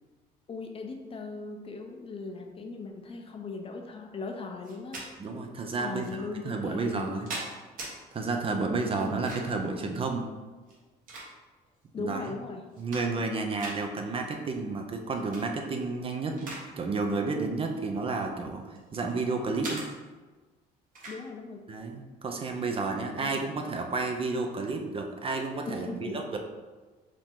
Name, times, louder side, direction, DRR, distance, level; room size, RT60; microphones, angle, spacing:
voice 1, 0.5-5.0 5.8-7.3 8.9-9.3 11.9-12.6 21.1-21.6 23.1-23.5 25.7-26.2, left 4 dB, 35° left, 3 dB, 0.6 m, -38 dB
sound 1, 4.6-5.1 6.0-6.1 6.8-7.9 9.0-9.6 10.6-11.7 12.2-12.3 12.6-13.3 13.6-13.8 15.1-15.5 15.9-16.7 17.0-17.2 18.0-19.1 19.6-19.9 20.9-21.2, right 2 dB, 55° right, 1.3 m, -40 dB
voice 2, 5.2-7.3 8.1-10.3 12.0-12.2 12.8-16.5 16.8-19.8 21.7-26.4, right 3 dB, 35° right, 3 dB, 0.5 m, -31 dB
5.0 x 2.8 x 3.6 m, 1.3 s
cardioid pair, 110°, 17 cm